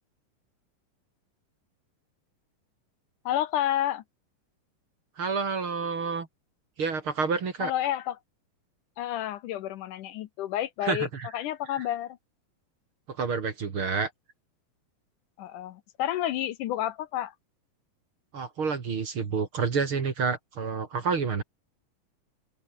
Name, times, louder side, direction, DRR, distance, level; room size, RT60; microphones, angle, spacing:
voice 1, 3.3-4.0 7.6-8.2 9.0-11.1 11.3-12.2 15.4-17.3, left 12 dB, 70° left, 2.3 m, -30 dB
voice 2, 5.2-6.3 6.8-7.7 10.8-11.3 13.1-14.1 18.3-21.4, right 5 dB, 40° right, 2.7 m, -29 dB
open air
omnidirectional pair, 4.0 m